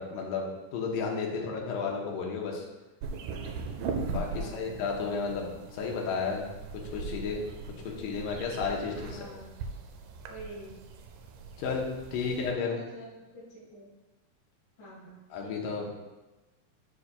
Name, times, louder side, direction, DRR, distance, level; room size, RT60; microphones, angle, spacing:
voice 1, 0.0-2.6 4.1-6.5 6.7-7.5 7.9-9.3 11.6-12.8 15.3-15.9, left 5 dB, 85° left, 0 dB, 2.5 m, -33 dB
voice 2, 1.3-1.7 4.3-4.9 7.9-8.3 9.1-9.5 10.3-10.7 12.2-13.1 13.3-13.9 14.8-15.6, right 1 dB, 65° left, -10 dB, 3.2 m, -46 dB
sound 1, 3.0-12.5, right 4 dB, 85° right, 2.2 m, -40 dB
11.0 x 4.8 x 2.2 m, 1.1 s
omnidirectional pair, 3.8 m